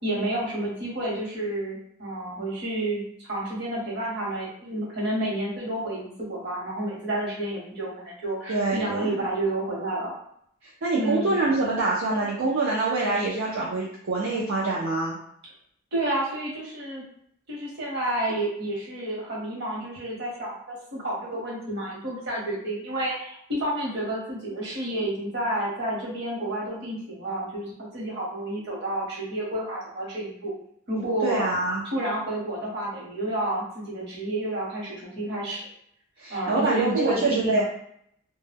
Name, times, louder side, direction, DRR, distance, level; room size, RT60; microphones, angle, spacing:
voice 1, 0.0-10.1 11.0-11.4 15.9-17.0 17.5-30.5 30.9-31.4 31.9-35.7 36.3-37.6, right 1 dB, 55° right, -4 dB, 1.0 m, -30 dB
voice 2, 8.5-9.2 10.6-15.2 31.2-31.8 36.2-37.6, right 3 dB, 70° right, -5 dB, 0.5 m, -25 dB
2.1 x 2.1 x 3.3 m, 0.68 s
head